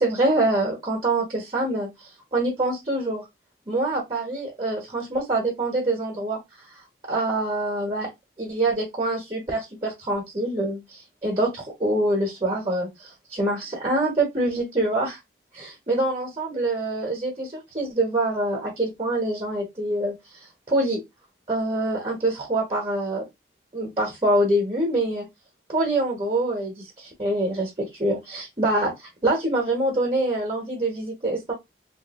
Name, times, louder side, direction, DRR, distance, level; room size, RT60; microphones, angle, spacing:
voice 1, 0.0-3.3 3.7-6.4 7.1-8.1 8.4-15.2 15.5-21.0 21.5-23.3 23.7-25.3 25.7-28.9 29.2-31.5, right 1 dB, 30° right, 1.1 m, -25 dB
3.2 x 2.6 x 3.0 m
head